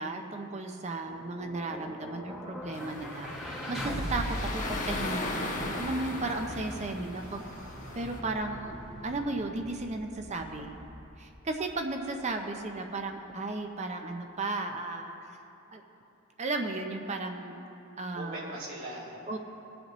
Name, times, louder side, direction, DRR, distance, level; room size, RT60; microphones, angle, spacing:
voice 1, 0.0-7.5 7.9-8.8 9.0-10.8 11.2-15.2 15.7-15.8 16.4-17.7 18.0-18.6 19.3-19.4, right 2 dB, 35° right, 4 dB, 0.6 m, -35 dB
sound 1, 0.8-12.8, equal, ahead, 1.3 m, -41 dB
sound 2, 2.7-8.2, left 2 dB, 35° left, 1.1 m, -38 dB
voice 2, 7.1-8.0 18.1-19.2, right 1 dB, 75° right, -4 dB, 2.6 m, -43 dB
20.5 x 8.0 x 3.0 m, 2.9 s
head